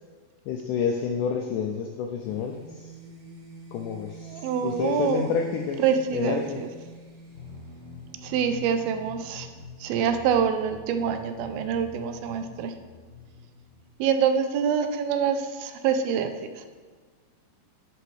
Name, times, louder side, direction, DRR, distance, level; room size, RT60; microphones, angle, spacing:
voice 1, 0.5-2.9 3.7-5.8 6.1-6.6, left 6 dB, 85° left, 3 dB, 1.9 m, -29 dB
sound 1, 2.2-8.8, right 2 dB, 50° right, 2.2 m, -46 dB
voice 2, 4.3-5.3 5.8-6.4 8.2-9.5 9.8-12.7 14.0-16.3, right 7 dB, 85° right, 8 dB, 2.5 m, -25 dB
sound 2, 7.3-13.9, left 4 dB, 30° right, 2.8 m, -45 dB
10.0 x 7.7 x 3.3 m, 1.5 s
omnidirectional pair, 4.2 m